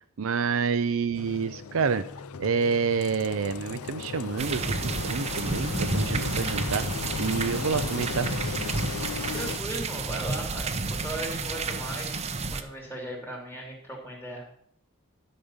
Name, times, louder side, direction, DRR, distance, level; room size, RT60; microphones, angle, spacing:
voice 1, 0.2-2.0 2.4-4.7 5.0-6.9 7.2-8.3, right 5 dB, 70° right, 10 dB, 0.5 m, -28 dB
sound 1, 1.1-13.1, left 1 dB, 35° left, 2.3 m, -49 dB
Engine, 1.2-9.6, left 6 dB, 80° left, 0.4 m, -36 dB
sound 2, 4.4-12.6, right 3 dB, 30° right, 0.7 m, -30 dB
voice 2, 9.3-14.4, right 1 dB, 10° left, -1 dB, 3.0 m, -37 dB
12.5 x 5.4 x 7.2 m, 0.66 s
head